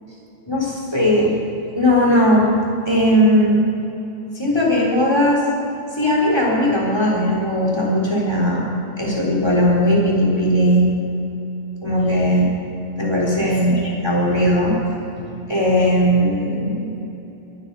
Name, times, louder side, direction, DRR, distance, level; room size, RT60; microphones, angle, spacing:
voice 1, 0.5-1.3 1.7-2.5 2.9-3.6 4.3-5.4 6.0-8.7 9.0-10.9 11.8-12.5 13.0-14.8 15.5-17.0, equal, 15° left, -3 dB, 3.8 m, -18 dB
21.5 x 10.5 x 5.6 m, 3.0 s
omnidirectional pair, 1.6 m